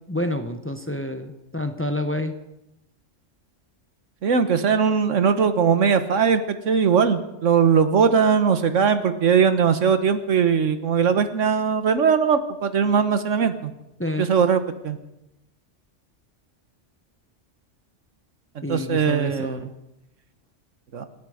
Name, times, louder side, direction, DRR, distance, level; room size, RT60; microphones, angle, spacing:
voice 1, 0.1-2.3 14.0-14.3 18.6-19.7, left 1 dB, 10° left, 7 dB, 0.9 m, -28 dB
voice 2, 4.2-13.7 14.2-15.0 18.7-19.7 20.9-21.0, right 6 dB, 85° right, 10 dB, 1.5 m, -20 dB
26.0 x 10.5 x 5.0 m, 0.91 s
omnidirectional pair, 1.3 m